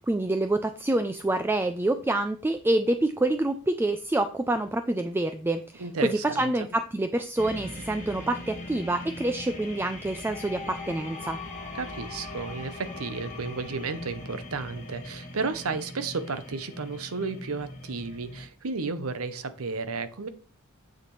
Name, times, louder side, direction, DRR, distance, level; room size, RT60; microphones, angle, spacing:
voice 1, 0.1-11.4, right 2 dB, 10° right, 9 dB, 0.3 m, -27 dB
voice 2, 5.8-6.7 11.8-20.3, right 4 dB, 75° right, 11 dB, 0.8 m, -33 dB
sound 1, 7.4-18.5, left 1 dB, 35° left, 1.6 m, -41 dB
sound 2, 10.1-15.4, left 5 dB, 50° left, 1.4 m, -44 dB
7.5 x 6.8 x 3.1 m, 0.39 s
head